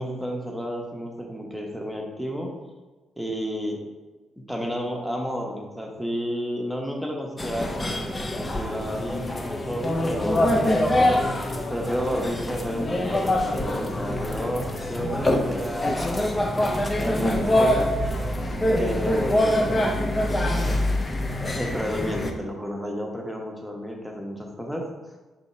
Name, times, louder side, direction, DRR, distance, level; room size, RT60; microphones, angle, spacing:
voice 1, 0.0-2.5 3.2-3.8 4.5-8.1 8.3-10.5 11.7-16.5 17.0-17.9 18.7-20.1 21.6-24.9, equal, ahead, 0 dB, 0.9 m, -31 dB
sound 1, 7.4-22.3, left 1 dB, 25° left, 0.5 m, -24 dB
4.6 x 2.8 x 4.2 m, 1.2 s
cardioid pair, 90°, 0 cm